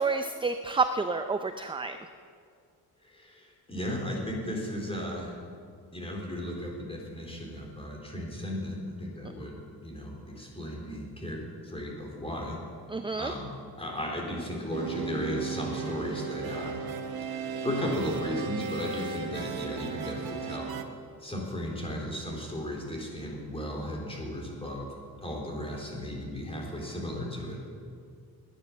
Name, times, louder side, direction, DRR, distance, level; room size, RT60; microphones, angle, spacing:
voice 1, 0.0-2.0 12.9-13.3, right 4 dB, 15° right, 8 dB, 0.5 m, -29 dB
voice 2, 3.0-5.4 5.9-12.6 13.2-13.5 13.8-16.8 17.3-20.7 21.2-24.9 25.2-27.6, left 1 dB, 15° left, -1 dB, 3.8 m, -35 dB
sound 1, 14.7-20.8, right 6 dB, 70° right, 1.3 m, -35 dB
20.0 x 9.9 x 7.2 m, 2.2 s
cardioid pair, 140°, 38 cm